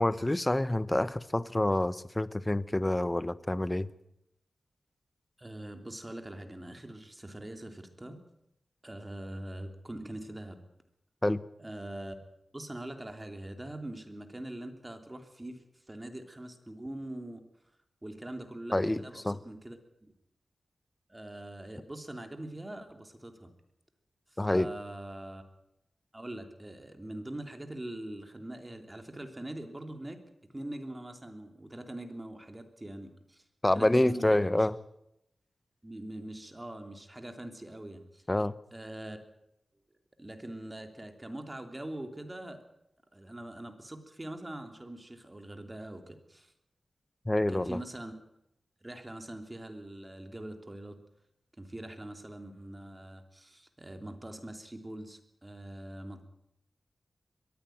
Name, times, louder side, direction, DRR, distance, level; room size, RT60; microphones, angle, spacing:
voice 1, 0.0-3.9 11.2-11.4 18.7-19.4 24.4-24.7 33.6-34.7 38.3-38.5 47.3-47.8, left 1 dB, 15° left, 16 dB, 1.0 m, -27 dB
voice 2, 5.4-8.2 8.8-10.6 11.6-12.1 12.5-17.4 18.0-20.1 21.1-23.5 24.3-25.4 26.1-30.2 30.5-33.4 33.7-34.7 35.8-38.2 38.7-39.2 40.2-42.6 43.1-46.5 47.5-48.1 48.8-51.0 51.6-56.2, right 1 dB, 20° right, 6 dB, 3.1 m, -43 dB
22.0 x 15.0 x 9.3 m, 0.81 s
wide cardioid pair, 85°, 0 cm